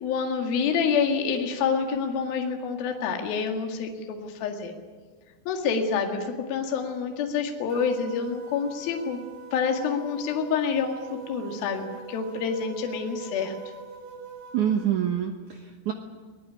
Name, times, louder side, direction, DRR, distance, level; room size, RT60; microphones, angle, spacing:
voice 1, 0.0-4.7 5.5-9.2 9.5-10.9 11.3-11.8 12.1-13.6, left 6 dB, 60° left, 3 dB, 3.5 m, -27 dB
sound 1, 7.7-14.9, right 3 dB, 40° right, 4.5 m, -43 dB
voice 2, 14.5-15.9, right 9 dB, 80° right, 4 dB, 1.7 m, -26 dB
21.0 x 19.0 x 9.8 m, 1.4 s
omnidirectional pair, 5.5 m